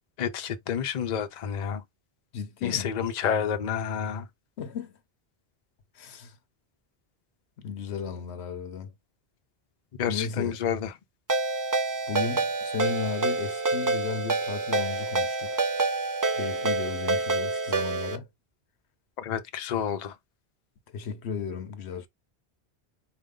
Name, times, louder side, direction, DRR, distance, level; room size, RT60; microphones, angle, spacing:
voice 1, 0.2-1.8 2.6-4.3 10.0-10.9 19.2-20.1, left 8 dB, 50° left, 0.6 m, -29 dB
voice 2, 2.3-2.9 4.6-4.9 5.9-6.4 7.6-8.9 10.1-10.6 12.1-15.6 16.3-18.3 20.9-22.1, left 6 dB, 80° left, 1.0 m, -35 dB
Ringtone, 11.3-18.2, right 3 dB, 30° right, 0.4 m, -27 dB
4.3 x 2.6 x 3.6 m
omnidirectional pair, 1.1 m